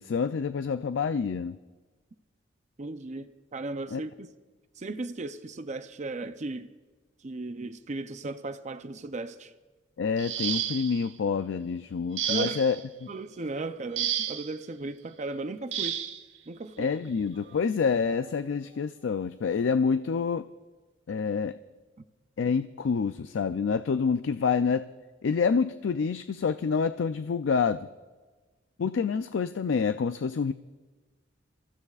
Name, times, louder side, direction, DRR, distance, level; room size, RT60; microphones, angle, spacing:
voice 1, 0.0-1.6 3.9-4.0 10.0-12.8 13.0-13.1 16.8-20.5 21.1-21.6 22.4-24.9 25.2-27.9 28.8-30.5, left 5 dB, 75° left, 0.4 m, -27 dB
voice 2, 2.8-4.3 4.8-6.7 7.2-9.5 12.3-12.6 13.1-16.0 16.5-16.9 22.0-22.1, right 3 dB, 40° right, 0.5 m, -36 dB
sound 1, 10.2-11.1 12.2-12.8 14.0-14.5 15.7-16.2 17.4-17.5 18.0-18.3, right 10 dB, 75° right, 1.1 m, -31 dB
26.5 x 15.0 x 2.4 m
head